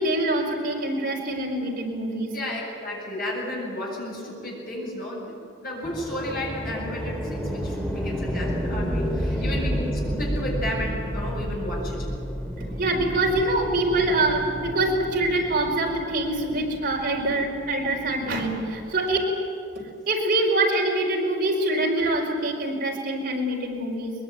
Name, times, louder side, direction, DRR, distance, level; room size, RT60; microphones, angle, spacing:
voice 1, 0.0-2.3 12.6-19.2 20.1-24.1, right 2 dB, 50° right, -1 dB, 5.0 m, -25 dB
voice 2, 2.3-5.3 5.6-12.1, left 1 dB, 50° left, -2 dB, 8.0 m, -32 dB
sound 1, 5.8-18.9, equal, 5° left, 2.1 m, -31 dB
22.5 x 22.0 x 9.3 m, 2.5 s
head